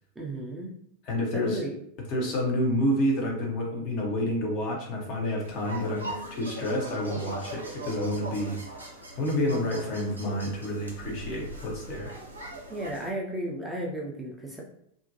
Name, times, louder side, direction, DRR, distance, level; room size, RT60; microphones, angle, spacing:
voice 1, 0.2-0.7 1.3-1.7 12.7-14.6, right 1 dB, 10° right, -3 dB, 0.5 m, -34 dB
voice 2, 1.0-1.6 2.1-8.6 9.2-12.2, left 1 dB, 40° left, -1 dB, 0.7 m, -29 dB
sound 1, 5.4-13.1, right 1 dB, 80° right, 0.6 m, -40 dB
2.5 x 2.1 x 2.7 m, 0.73 s
figure-of-eight pair, 90°, 0 cm